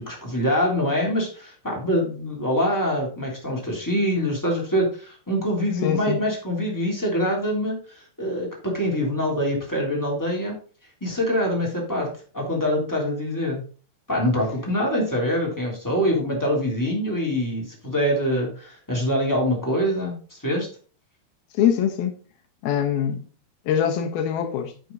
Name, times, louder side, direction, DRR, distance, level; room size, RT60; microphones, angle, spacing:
voice 1, 0.0-10.5 11.0-12.1 12.3-13.6 14.1-20.7, equal, 5° left, 2.4 m, -24 dB
voice 2, 5.8-6.2 21.6-22.2 22.6-23.2 23.7-24.7, left 9 dB, 70° left, 2.9 m, -23 dB
9.7 x 6.1 x 4.0 m
omnidirectional pair, 4.8 m